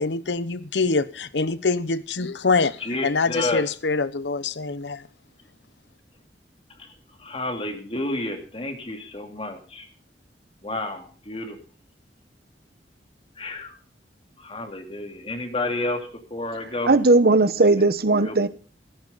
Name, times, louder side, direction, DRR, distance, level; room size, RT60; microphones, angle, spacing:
voice 1, 0.0-5.1, left 4 dB, 90° left, 0.9 m, -25 dB
voice 2, 2.8-3.6 7.2-9.9 10.6-11.6 13.4-13.7 14.4-16.0 16.3-16.9 18.2-18.4, left 2 dB, 30° left, 2.7 m, -30 dB
voice 3, 16.9-18.5, right 2 dB, 60° right, 1.0 m, -17 dB
15.5 x 15.0 x 4.1 m
head